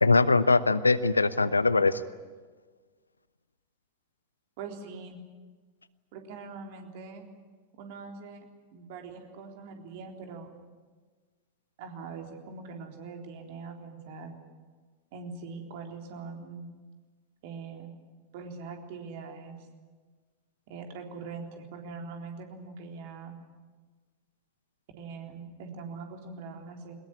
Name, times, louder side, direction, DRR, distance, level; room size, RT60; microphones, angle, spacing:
voice 1, 0.0-2.0, left 3 dB, 80° left, 16 dB, 0.9 m, -22 dB
voice 2, 4.6-5.2 6.1-7.3 7.8-8.5 8.7-10.5 11.8-14.4 15.1-16.7 17.4-17.9 18.3-19.6 20.7-23.4 25.0-26.9, right 4 dB, 50° right, 3 dB, 3.7 m, -42 dB
22.5 x 20.5 x 10.0 m, 1.4 s
figure-of-eight pair, 90°, 0 cm